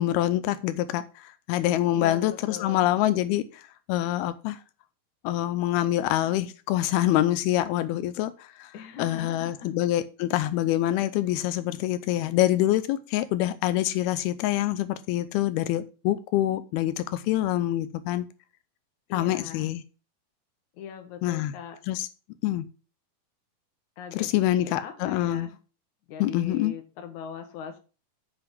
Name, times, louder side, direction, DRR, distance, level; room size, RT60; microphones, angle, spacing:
voice 1, 0.0-3.6 3.9-4.6 5.2-8.7 9.0-18.3 19.1-19.8 21.2-21.5 21.9-22.1 22.4-22.7 24.1-25.5 26.2-26.7, left 14 dB, 90° left, 2.6 m, -26 dB
voice 2, 1.9-2.9 8.7-9.7 19.1-19.7 20.7-21.8 24.0-25.6 26.1-27.8, left 8 dB, 60° left, 2.6 m, -40 dB
7.8 x 5.7 x 7.5 m
omnidirectional pair, 4.4 m